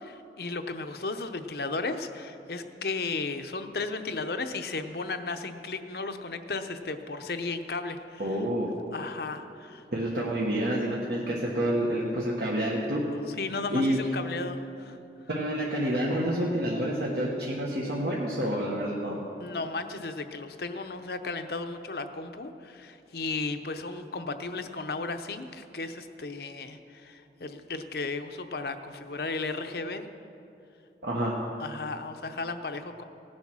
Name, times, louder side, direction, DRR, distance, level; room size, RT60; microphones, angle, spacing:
voice 1, 0.0-8.4 8.9-9.8 13.1-15.0 19.4-30.1 31.6-33.0, left 3 dB, 60° left, 8 dB, 0.7 m, -35 dB
voice 2, 8.2-8.7 9.9-13.0 13.7-14.0 15.3-19.1 31.0-31.3, right 1 dB, 65° right, -4 dB, 1.5 m, -28 dB
16.5 x 9.6 x 6.1 m, 2.8 s
head